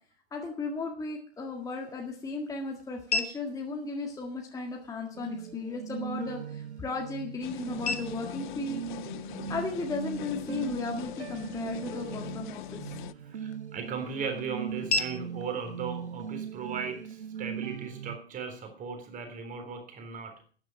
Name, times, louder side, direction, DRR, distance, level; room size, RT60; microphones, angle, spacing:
voice 1, 0.3-8.8 9.5-13.0, left 3 dB, 10° left, 1 dB, 1.9 m, -35 dB
sound 1, 1.3-17.3, left 3 dB, 80° left, 1.4 m, -41 dB
sound 2, 5.1-18.2, right 8 dB, 85° right, 0.6 m, -40 dB
sound 3, 7.4-13.1, left 15 dB, 50° left, 0.6 m, -41 dB
voice 2, 13.2-20.3, right 6 dB, 25° right, 6 dB, 3.7 m, -37 dB
12.5 x 10.0 x 6.4 m, 0.43 s
figure-of-eight pair, 110°, 32 cm